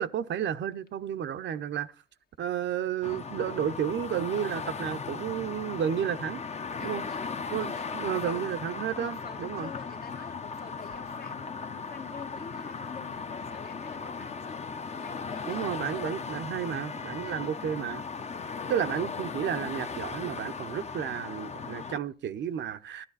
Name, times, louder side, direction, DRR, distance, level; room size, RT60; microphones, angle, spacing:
voice 1, 0.0-1.9 2.4-6.4 6.8-7.1 7.5-9.7 15.5-18.0 18.7-23.1, right 9 dB, 65° right, 0.8 m, -32 dB
sound 1, 3.0-22.0, left 5 dB, 35° left, 0.9 m, -37 dB
voice 2, 6.8-8.6 9.0-14.7 15.0-16.2 17.2-17.6 18.6-19.1 21.4-21.5 22.4-22.5, left 6 dB, 50° left, 1.5 m, -47 dB
12.5 x 11.0 x 4.1 m
cardioid pair, 90°, 20 cm